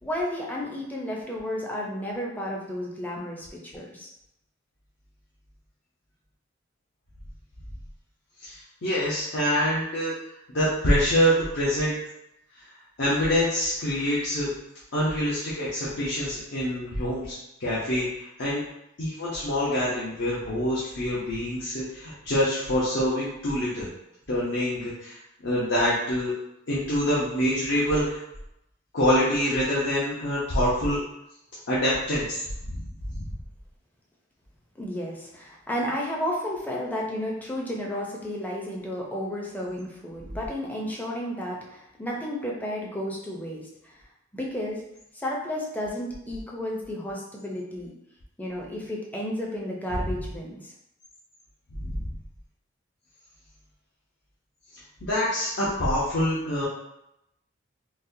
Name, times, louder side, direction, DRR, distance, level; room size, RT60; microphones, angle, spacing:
voice 1, 0.0-4.1 34.8-44.0 44.3-44.8 45.1-47.9 48.4-50.7, left 1 dB, 10° left, -3 dB, 0.5 m, -32 dB
voice 2, 8.4-10.1 10.5-11.9 13.0-14.5 14.9-18.6 19.0-23.9 24.3-25.2 25.4-26.3 26.7-28.2 28.9-31.0 31.7-32.4 32.7-32.8 33.1-33.3 51.8-52.1 55.1-56.6, equal, 65° left, -8 dB, 0.8 m, -25 dB
4.0 x 2.2 x 2.6 m, 0.84 s
head